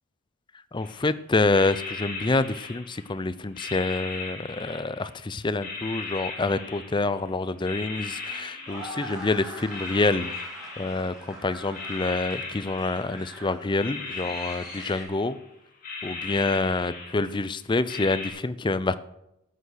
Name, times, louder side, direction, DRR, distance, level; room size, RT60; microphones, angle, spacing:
voice 1, 0.7-10.3 10.8-15.4 16.0-18.9, left 3 dB, 20° left, 14 dB, 0.4 m, -27 dB
sound 1, 0.8-1.1 1.4-3.2 3.6-5.2 5.6-7.3 7.6-9.3 9.7-11.4 11.7-13.4 13.8-15.4 15.8-17.5 17.9-18.3, left 4 dB, 40° left, 3.2 m, -38 dB
sound 2, 7.1-15.0, right 1 dB, 5° right, 4.1 m, -43 dB
13.0 x 8.0 x 6.5 m, 0.86 s
head